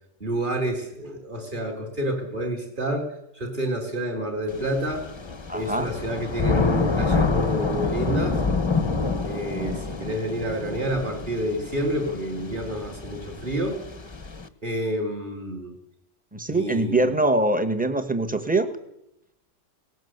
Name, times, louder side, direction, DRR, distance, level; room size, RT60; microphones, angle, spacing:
voice 1, 0.2-5.1 5.5-8.4 9.2-13.8 14.6-15.7 16.5-17.2, right 1 dB, 30° right, 2 dB, 3.8 m, -29 dB
Thunder / Rain, 4.5-14.5, left 4 dB, 20° left, 0.8 m, -27 dB
voice 2, 5.5-5.9 16.3-18.8, right 2 dB, 5° right, 8 dB, 1.2 m, -23 dB
18.5 x 18.0 x 8.0 m, 0.83 s
omnidirectional pair, 1.8 m